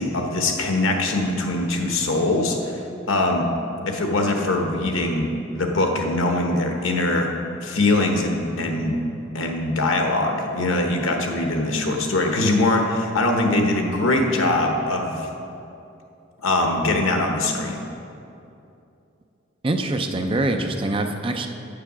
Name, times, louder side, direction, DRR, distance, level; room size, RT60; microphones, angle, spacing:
voice 1, 0.0-3.5 3.9-5.2 5.5-7.3 7.6-8.9 9.3-15.3 16.4-17.8, left 2 dB, 85° left, 3 dB, 1.1 m, -22 dB
voice 2, 19.6-21.5, right 2 dB, 25° right, 5 dB, 0.5 m, -24 dB
7.8 x 6.8 x 6.1 m, 2.7 s
head